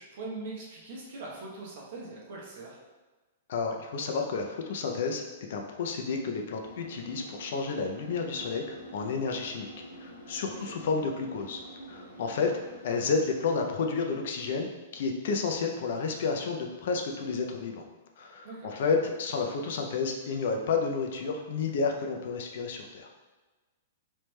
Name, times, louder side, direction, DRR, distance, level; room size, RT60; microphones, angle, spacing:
voice 1, 0.0-2.8 10.6-10.7 18.4-18.7, right 3 dB, 45° right, -4 dB, 0.9 m, -41 dB
voice 2, 3.5-5.2 5.5-9.7 10.0-11.6 11.9-12.5 12.8-17.8 18.2-23.1, left 4 dB, 50° left, 3 dB, 0.4 m, -31 dB
sound 1, 6.6-13.5, right 1 dB, 80° left, 1.1 m, -47 dB
3.2 x 3.1 x 3.1 m, 1.2 s
hypercardioid pair, 175°, 0 cm